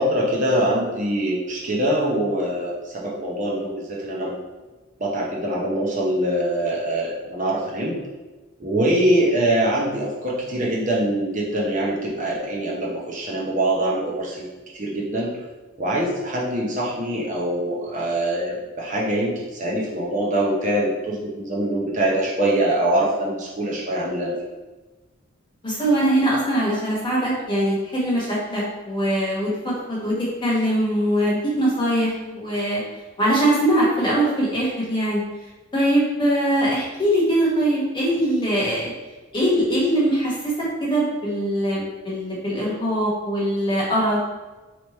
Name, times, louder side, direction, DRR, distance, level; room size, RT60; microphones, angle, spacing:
voice 1, 0.0-4.3 5.0-7.9 8.6-14.5 14.7-15.3 15.8-24.3, right 1 dB, 40° right, -3 dB, 0.7 m, -23 dB
voice 2, 25.6-32.8 33.2-35.2 35.7-38.9 39.3-44.2, right 1 dB, 25° left, -5 dB, 1.2 m, -22 dB
3.3 x 3.0 x 4.2 m, 1.2 s
head